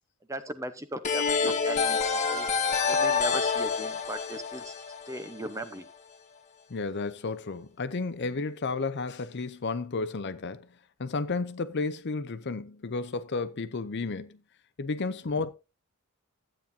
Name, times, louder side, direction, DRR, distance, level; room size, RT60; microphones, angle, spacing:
voice 1, 0.3-2.0 2.3-2.5 2.9-4.8 5.1-5.9, right 1 dB, 15° right, 0.9 m, -38 dB
sound 1, 1.0-5.7, left 5 dB, 35° left, 1.5 m, -27 dB
voice 2, 6.7-10.7 11.0-14.4 14.8-15.5, left 3 dB, 50° left, 0.6 m, -32 dB
13.0 x 8.8 x 2.7 m
head